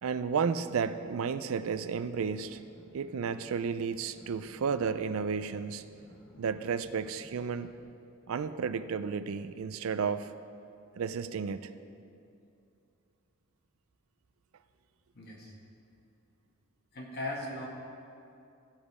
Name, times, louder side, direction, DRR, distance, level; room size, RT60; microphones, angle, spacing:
voice 1, 0.0-2.6 2.9-5.8 6.4-7.7 8.3-10.3 11.0-11.7, right 6 dB, 70° right, 12 dB, 0.4 m, -32 dB
sound 1, 2.1-7.8, left 1 dB, 30° left, 1.7 m, -57 dB
voice 2, 15.1-15.6 16.9-17.7, left 1 dB, 50° left, -2 dB, 1.7 m, -38 dB
15.5 x 5.2 x 4.8 m, 2.6 s
head